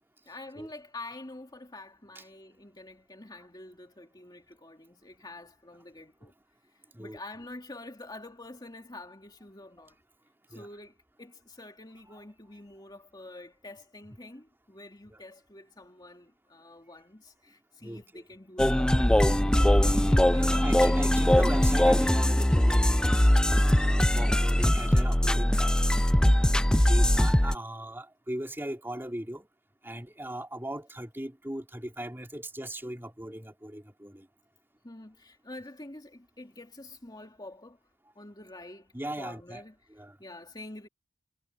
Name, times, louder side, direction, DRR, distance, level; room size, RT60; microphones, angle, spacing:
voice 1, 0.3-6.3 6.7-10.0 10.5-21.2 24.0-24.5 26.4-26.9 34.8-37.8 38.1-40.9, left 2 dB, 20° left, 2.5 m, -47 dB
voice 2, 17.8-18.2 20.4-23.2 23.5-25.8 26.9-29.5 29.8-34.3 38.9-39.6 39.9-40.2, right 1 dB, 10° right, 3.3 m, -39 dB
sound 1, 18.6-27.5, left 1 dB, 5° left, 0.4 m, -22 dB
head